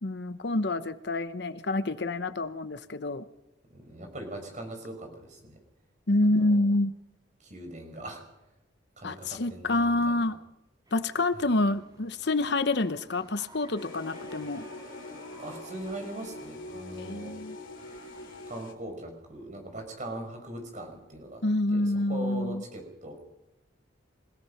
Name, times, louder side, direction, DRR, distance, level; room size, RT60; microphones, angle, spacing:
voice 1, 0.0-3.2 6.1-6.9 9.0-10.4 10.9-14.7 17.0-17.6 21.4-22.6, left 2 dB, 60° left, 12 dB, 0.9 m, -27 dB
voice 2, 3.7-5.6 6.3-6.6 7.4-8.2 9.0-10.2 15.4-17.3 18.5-21.4 21.7-23.2, right 1 dB, 40° right, 4 dB, 5.7 m, -40 dB
sound 1, 10.8-18.6, right 1 dB, 20° right, 6.4 m, -53 dB
sound 2, 13.8-18.7, left 2 dB, 85° left, 3.1 m, -44 dB
28.5 x 17.0 x 5.8 m, 0.93 s
head